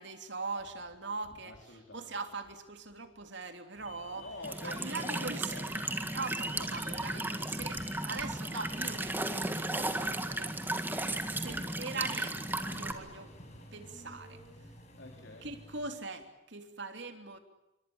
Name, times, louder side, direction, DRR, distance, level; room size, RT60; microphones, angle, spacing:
voice 1, 0.0-1.5 1.9-4.3 4.6-5.6 6.0-7.8 8.1-10.9 11.2-13.3 13.7-14.4 15.4-17.4, right 3 dB, 60° right, 6 dB, 3.2 m, -41 dB
voice 2, 1.4-2.1 4.1-5.7 6.5-8.6 9.9-10.0 11.5-11.7 13.5-13.6 15.0-15.5, left 2 dB, 60° left, 3 dB, 4.1 m, -48 dB
sound 1, 3.7-15.9, left 1 dB, 35° left, 6.1 m, -53 dB
Walk footsteps / Chirp tweet / Stream, 4.4-12.9, right 2 dB, 10° right, 1.8 m, -35 dB
28.0 x 24.0 x 7.1 m, 0.98 s
head